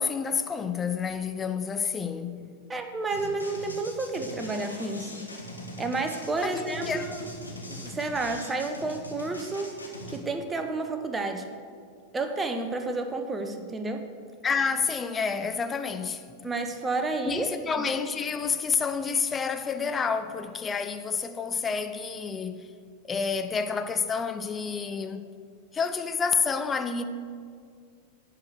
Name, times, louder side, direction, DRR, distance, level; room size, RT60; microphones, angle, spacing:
voice 1, 0.0-2.5 6.4-7.1 14.4-16.3 17.2-22.7 23.1-25.2 25.7-27.0, left 5 dB, 20° left, 0.5 m, -29 dB
voice 2, 2.7-5.3 5.8-7.3 7.7-9.7 10.1-11.4 12.1-14.1 16.4-17.5 17.8-17.9, right 3 dB, 15° right, 0.8 m, -31 dB
sound 1, 3.1-10.2, left 1 dB, 85° left, 1.2 m, -41 dB
10.5 x 4.7 x 6.5 m
figure-of-eight pair, 90°, 0 cm